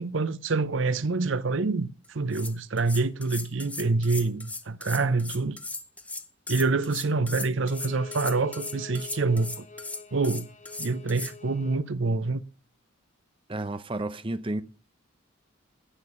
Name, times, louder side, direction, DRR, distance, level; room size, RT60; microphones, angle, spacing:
voice 1, 0.0-5.6 6.5-9.7 10.1-10.5 10.8-12.4, right 3 dB, 65° right, 0.7 m, -26 dB
sound 1, 2.0-11.3, left 3 dB, 5° left, 0.7 m, -37 dB
Bowed string instrument, 7.6-11.9, left 3 dB, 35° left, 1.4 m, -44 dB
voice 2, 13.5-14.6, right 2 dB, 25° right, 0.7 m, -31 dB
10.0 x 8.9 x 7.1 m
head